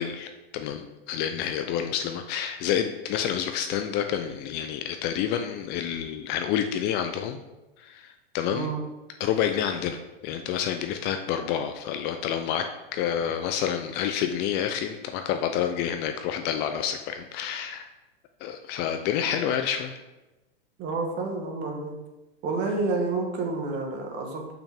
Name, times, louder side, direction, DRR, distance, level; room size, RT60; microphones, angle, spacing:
voice 1, 0.0-7.4 7.8-8.7 9.2-10.0 10.2-12.6 12.9-17.9 18.4-20.0, left 9 dB, 35° left, 7 dB, 0.5 m, -28 dB
voice 2, 8.5-8.8 20.8-22.0 22.4-24.5, right 3 dB, 35° right, 2 dB, 1.5 m, -29 dB
6.8 x 5.8 x 3.5 m, 1.0 s
hypercardioid pair, 120°, 31 cm